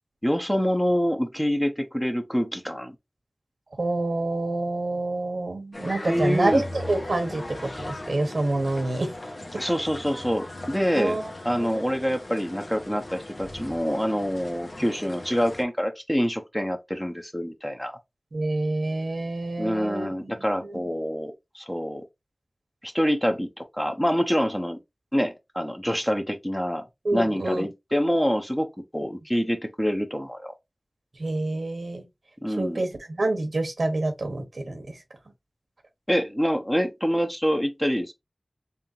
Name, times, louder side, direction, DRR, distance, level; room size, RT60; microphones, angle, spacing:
voice 1, 0.2-2.9 6.0-6.6 9.6-11.2 11.4-18.0 19.6-22.0 22.8-24.8 25.1-26.8 27.1-28.7 28.9-30.5 32.4-32.8 36.1-38.1, equal, 10° left, 1.0 m, -26 dB
voice 2, 3.8-9.1 10.9-11.2 11.5-11.8 18.3-20.3 20.6-20.8 27.0-27.7 31.2-32.0 32.6-35.0, right 2 dB, 80° right, 1.2 m, -27 dB
sound 1, 5.7-15.6, left 1 dB, 60° left, 1.2 m, -39 dB
3.6 x 3.5 x 2.8 m
wide cardioid pair, 45°, 0 cm